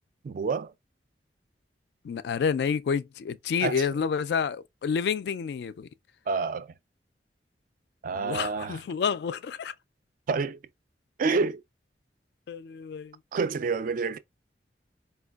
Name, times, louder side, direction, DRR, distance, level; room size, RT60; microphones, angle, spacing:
voice 1, 0.2-0.7 3.6-3.8 6.3-6.7 8.0-8.8 10.3-10.6 11.2-11.6 13.3-14.2, right 4 dB, 50° right, 0.3 m, -28 dB
voice 2, 2.0-5.9 8.1-9.7 12.5-13.2, left 6 dB, 65° left, 0.3 m, -29 dB
4.4 x 2.2 x 2.3 m
head